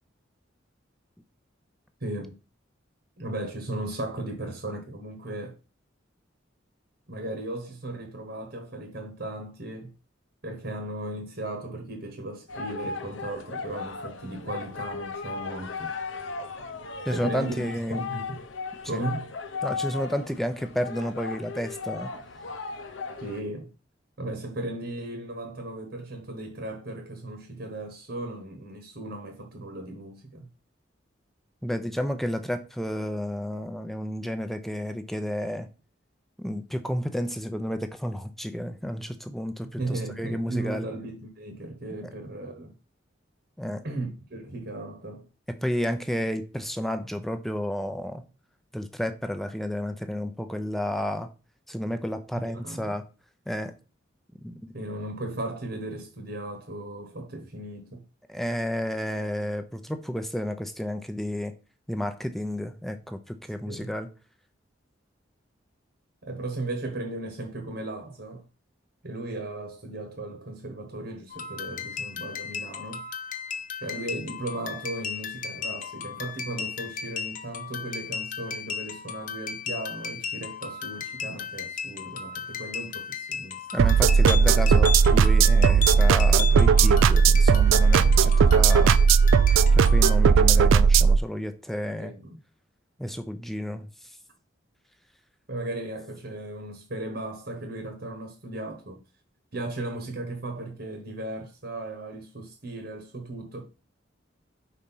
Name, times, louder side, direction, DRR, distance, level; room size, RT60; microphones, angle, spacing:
voice 1, 2.0-2.3 3.2-5.6 7.1-9.9 10.4-15.9 17.1-18.4 18.8-19.3 23.2-23.7 24.2-30.5 39.8-42.7 43.8-45.2 52.3-52.9 54.7-58.0 63.6-63.9 66.2-68.4 69.0-73.0 73.8-83.7 92.0-92.4 95.5-99.0 99.5-103.6, right 2 dB, 60° right, 1.3 m, -36 dB
sound 1, 12.5-23.4, left 4 dB, 80° left, 0.8 m, -36 dB
voice 2, 17.1-18.1 18.9-19.0 19.6-22.1 31.6-35.7 36.4-40.9 43.6-43.8 45.6-48.2 48.7-51.3 51.7-53.0 53.5-53.7 54.4-54.6 58.3-61.5 61.9-64.1 83.7-89.0 89.7-92.1 93.0-93.9, equal, ahead, 0.6 m, -31 dB
sound 2, 71.3-90.2, left 6 dB, 45° left, 0.7 m, -35 dB
sound 3, 83.8-91.2, right 6 dB, 85° right, 0.3 m, -17 dB
4.9 x 4.3 x 5.4 m
head